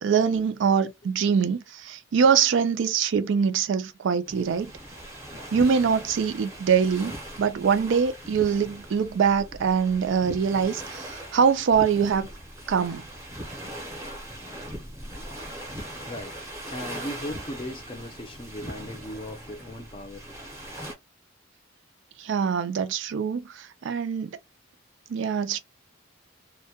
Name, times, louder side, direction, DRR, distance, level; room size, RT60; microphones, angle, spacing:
voice 1, 0.0-4.7 5.5-12.3 12.7-13.0 22.2-24.4 25.1-25.6, right 6 dB, 60° right, 0.3 m, -24 dB
sound 1, 4.3-20.9, right 1 dB, 15° right, 0.7 m, -40 dB
voice 2, 16.0-16.4 16.7-20.3, left 1 dB, 25° left, 0.5 m, -37 dB
2.2 x 2.1 x 2.8 m
head